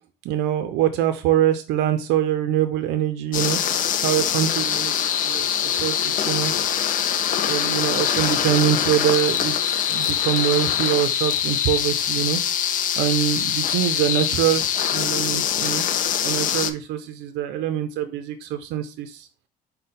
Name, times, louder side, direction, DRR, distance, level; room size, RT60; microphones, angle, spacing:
voice 1, 0.2-3.6 4.0-6.5 7.5-12.4 13.0-15.9 16.2-19.3, right 11 dB, 90° right, 9 dB, 0.4 m, -24 dB
sound 1, 3.3-16.7, left 9 dB, 50° left, 0.4 m, -23 dB
5.0 x 2.1 x 4.1 m, 0.35 s
cardioid pair, 110°, 17 cm